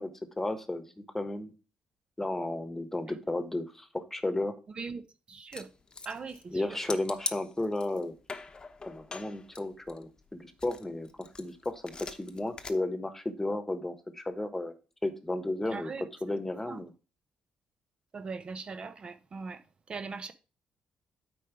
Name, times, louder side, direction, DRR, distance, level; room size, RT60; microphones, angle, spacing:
voice 1, 0.0-1.5 2.2-4.5 6.5-8.2 8.8-14.7 15.0-16.9, left 2 dB, 10° left, 1.3 m, -33 dB
voice 2, 5.3-5.7 6.1-6.4 15.7-16.0 16.7-16.8 18.1-19.6 19.9-20.3, right 4 dB, 40° right, 0.8 m, -39 dB
sound 1, 5.5-6.5 6.9-8.0 8.3-10.3 10.6-12.7, left 4 dB, 30° left, 0.9 m, -41 dB
8.7 x 4.8 x 4.7 m
cardioid pair, 85°, 3 cm